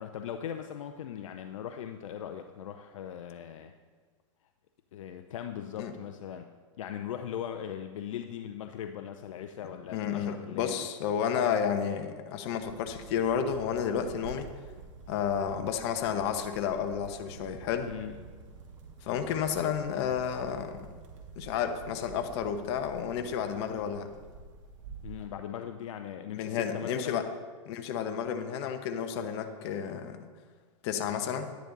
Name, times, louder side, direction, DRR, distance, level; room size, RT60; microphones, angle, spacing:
voice 1, 0.0-3.7 4.9-10.9 17.9-18.1 25.0-27.2, left 9 dB, 75° left, 7 dB, 0.6 m, -39 dB
voice 2, 9.9-14.5 15.1-17.9 19.0-20.9 21.4-24.1 26.3-27.2 27.7-30.3 30.8-31.5, left 8 dB, 55° left, 7 dB, 1.1 m, -31 dB
sound 1, 12.6-25.3, right 4 dB, 70° right, 1.8 m, -49 dB
10.5 x 10.0 x 4.0 m, 1.5 s
hypercardioid pair, 125°, 17 cm